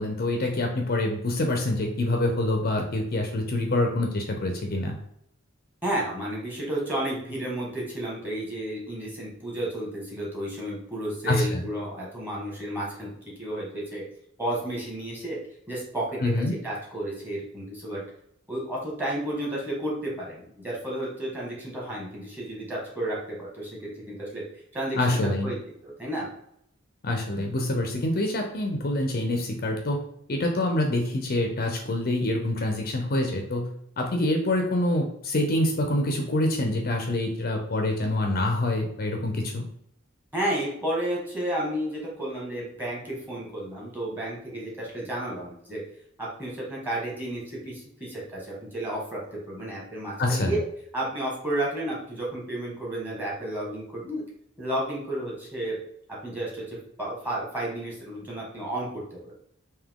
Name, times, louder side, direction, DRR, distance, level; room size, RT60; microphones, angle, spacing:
voice 1, 0.0-5.0 11.3-11.6 16.2-16.6 25.0-25.5 27.0-30.0 30.3-33.7 34.0-39.6 50.2-50.6, left 1 dB, 45° left, 3 dB, 0.5 m, -26 dB
voice 2, 5.8-13.1 13.4-14.0 14.4-15.4 15.7-16.3 16.6-18.0 18.5-23.8 24.0-24.4 24.7-25.6 25.8-26.3 40.3-45.8 46.2-50.6 50.9-54.2 54.6-55.8 56.2-59.3, right 1 dB, 10° right, -5 dB, 1.4 m, -32 dB
3.6 x 2.7 x 3.6 m, 0.72 s
head